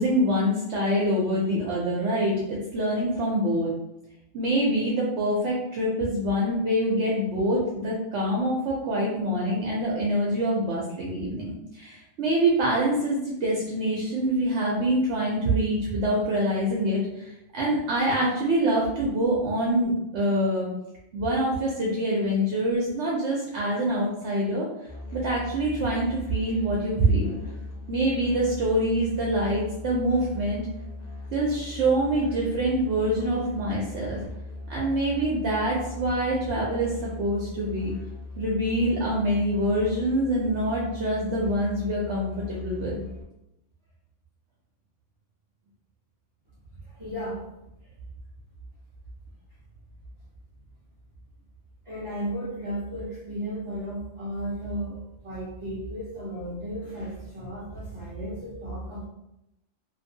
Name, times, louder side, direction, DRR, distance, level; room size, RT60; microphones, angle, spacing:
voice 1, 0.0-3.7 4.3-20.7 21.1-24.6 25.1-27.4 27.9-30.6 31.3-34.2 34.7-37.9 38.4-43.0, right 1 dB, 70° right, -4 dB, 0.8 m, -25 dB
Musical instrument, 24.8-43.2, left 2 dB, 50° left, 0.5 m, -39 dB
voice 2, 46.9-47.5 51.8-59.1, right 1 dB, 35° right, -9 dB, 0.6 m, -34 dB
2.6 x 2.5 x 2.6 m, 0.86 s
omnidirectional pair, 1.3 m